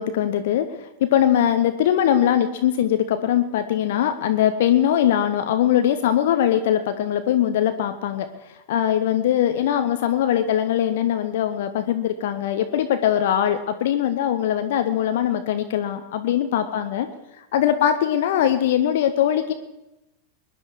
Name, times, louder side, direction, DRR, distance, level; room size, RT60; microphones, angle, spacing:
voice 1, 0.0-17.1 17.5-19.5, left 10 dB, 55° left, 9 dB, 0.9 m, -21 dB
21.0 x 10.5 x 4.8 m, 0.97 s
figure-of-eight pair, 90°, 0 cm